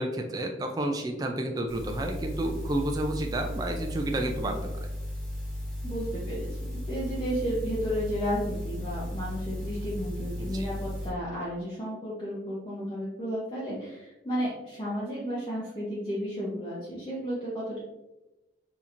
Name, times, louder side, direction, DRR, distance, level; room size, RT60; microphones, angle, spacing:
voice 1, 0.0-4.9 10.5-10.7, right 1 dB, 20° right, 3 dB, 0.3 m, -31 dB
sound 1, 1.7-11.1, left 1 dB, 5° left, 1.1 m, -35 dB
voice 2, 5.8-6.5 6.8-17.8, equal, 25° left, -7 dB, 0.7 m, -33 dB
4.2 x 2.8 x 2.5 m, 1.0 s
head